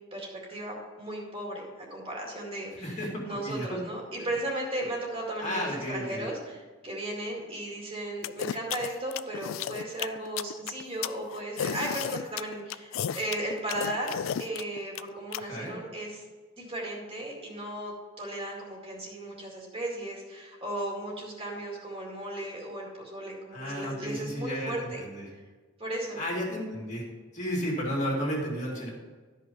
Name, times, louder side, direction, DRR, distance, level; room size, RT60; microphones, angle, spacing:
voice 1, 0.1-16.2 16.6-25.0 25.8-26.2, right 1 dB, 30° right, -2 dB, 2.2 m, -36 dB
voice 2, 2.8-3.7 4.2-4.3 5.4-6.3 15.4-15.7 23.5-25.2 26.2-27.0 27.3-28.9, equal, 35° left, -3 dB, 2.7 m, -33 dB
sound 1, 8.2-15.4, left 9 dB, 70° left, 0.4 m, -33 dB
12.5 x 5.6 x 5.4 m, 1.4 s
head